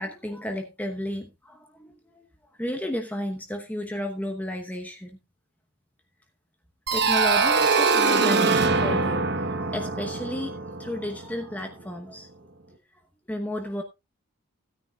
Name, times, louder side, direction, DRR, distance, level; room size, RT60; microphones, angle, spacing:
voice 1, 0.0-2.2 2.6-5.2 6.9-12.3 13.3-13.8, left 1 dB, 5° left, 3 dB, 0.9 m, -33 dB
sound 1, 6.9-11.5, right 4 dB, 50° right, 1.1 m, -23 dB
16.0 x 9.7 x 2.4 m, 0.23 s
head